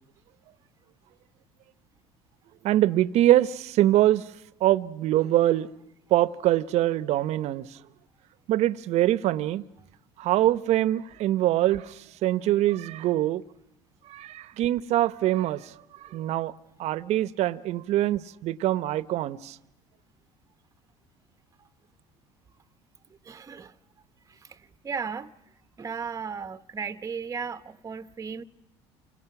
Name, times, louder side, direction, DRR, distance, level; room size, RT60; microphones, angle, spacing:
voice 1, 2.6-4.2 4.6-5.7 6.1-7.7 8.5-9.6 10.2-11.9 12.2-13.4 14.1-15.7 16.1-16.5 16.8-19.6, right 14 dB, 60° right, 1.0 m, -23 dB
voice 2, 23.2-23.7 24.3-25.3 25.8-28.4, right 6 dB, 25° right, 1.0 m, -36 dB
29.5 x 26.5 x 6.0 m
supercardioid pair, 90°, 12 cm